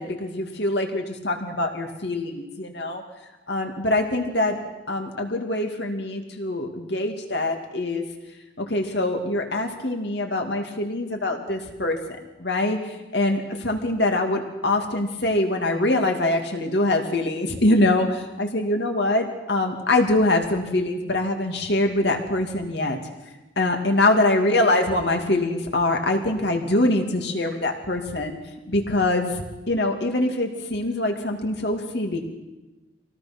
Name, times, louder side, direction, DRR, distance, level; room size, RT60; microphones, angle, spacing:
voice 1, 0.0-3.0 3.5-4.6 4.9-8.0 8.6-12.0 12.4-23.0 23.6-28.4 28.7-32.2, left 2 dB, 60° left, 3 dB, 2.6 m, -24 dB
25.5 x 18.0 x 6.2 m, 1.1 s
head